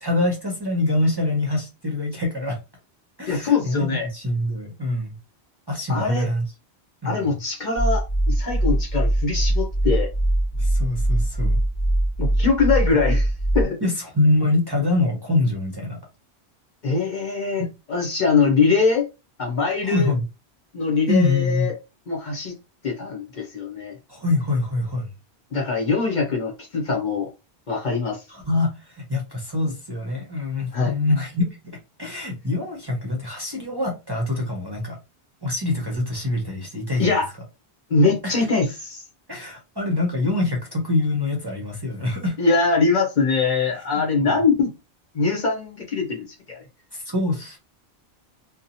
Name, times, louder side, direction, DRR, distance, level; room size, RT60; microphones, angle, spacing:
voice 1, 0.0-2.6 3.2-5.1 5.7-6.4 7.0-7.3 10.6-11.6 12.9-13.0 13.8-16.0 19.8-20.2 21.1-21.7 24.1-25.1 28.3-31.5 32.0-35.0 35.4-37.2 38.2-38.5 39.3-42.3 43.9-44.4 46.9-47.6, left 2 dB, 30° right, 0.6 m, -24 dB
voice 2, 3.3-4.1 5.9-6.3 7.0-10.1 12.2-13.3 13.5-13.8 16.8-17.6 17.9-19.1 19.4-20.1 20.7-21.8 22.1-22.5 22.8-24.0 25.5-27.3 27.7-28.2 30.7-30.9 37.0-37.3 37.9-39.0 42.4-44.7 45.1-46.6, left 4 dB, 50° left, 0.7 m, -22 dB
sound 1, 7.8-13.6, right 1 dB, 30° left, 1.4 m, -22 dB
2.7 x 2.1 x 2.6 m
omnidirectional pair, 1.1 m